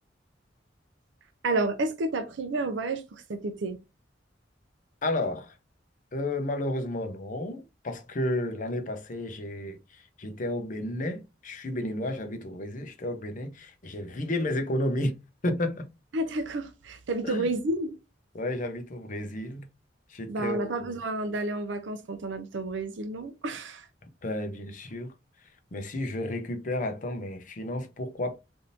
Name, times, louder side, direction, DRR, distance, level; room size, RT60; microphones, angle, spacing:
voice 1, 1.4-3.8 16.1-18.0 20.3-23.9, right 2 dB, 90° right, 0.5 m, -30 dB
voice 2, 5.0-5.6 6.1-15.1 15.4-15.9 17.2-17.5 18.3-19.7 20.1-21.0 24.2-25.1 25.7-28.4, left 1 dB, 45° left, 0.6 m, -32 dB
3.4 x 2.6 x 2.6 m
head